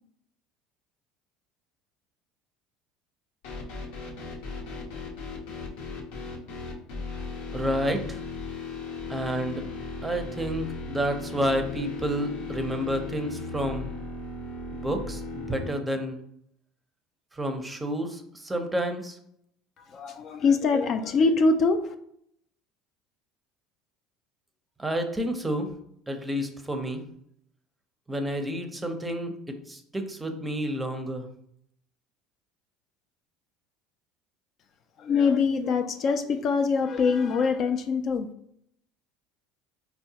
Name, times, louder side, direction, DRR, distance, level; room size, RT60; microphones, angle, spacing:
sound 1, 3.4-15.7, left 3 dB, 80° left, 0.8 m, -37 dB
voice 1, 7.5-8.2 9.1-9.7 10.0-13.9 14.7-16.2 17.3-19.2 24.8-25.7 26.1-27.0 28.1-31.3, equal, 15° right, 5 dB, 0.6 m, -30 dB
voice 2, 19.8-21.9 35.0-38.3, left 4 dB, 50° left, 8 dB, 0.4 m, -24 dB
4.4 x 2.1 x 2.8 m, 0.70 s
supercardioid pair, 90°, 0 cm